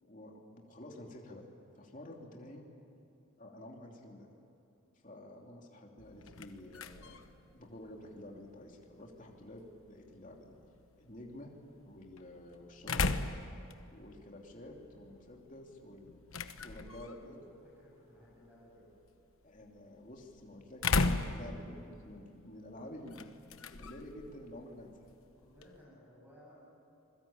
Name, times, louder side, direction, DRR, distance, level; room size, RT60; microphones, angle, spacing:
voice 1, 0.0-1.4 1.8-2.7 3.4-4.3 5.0-7.3 7.5-10.6 11.0-11.5 11.8-13.1 13.9-16.2 16.6-17.4 19.4-23.4 23.7-25.1, left 1 dB, 35° left, 0 dB, 2.9 m, -50 dB
sound 1, 6.0-25.8, left 3 dB, 75° left, 1.1 m, -40 dB
voice 2, 17.8-18.9 25.4-26.6, equal, 10° right, -6 dB, 7.4 m, -59 dB
27.0 x 21.5 x 8.8 m, 2.7 s
head